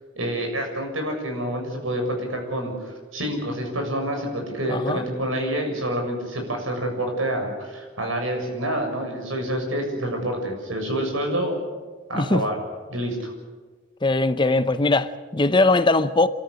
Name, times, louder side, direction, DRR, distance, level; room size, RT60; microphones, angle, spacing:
voice 1, 0.1-11.6 12.1-12.6 12.9-13.3, right 1 dB, 90° right, 7.0 m, -27 dB
voice 2, 4.7-5.0 12.1-12.4 14.0-16.3, left 2 dB, 25° left, 0.7 m, -20 dB
28.0 x 13.5 x 10.0 m
head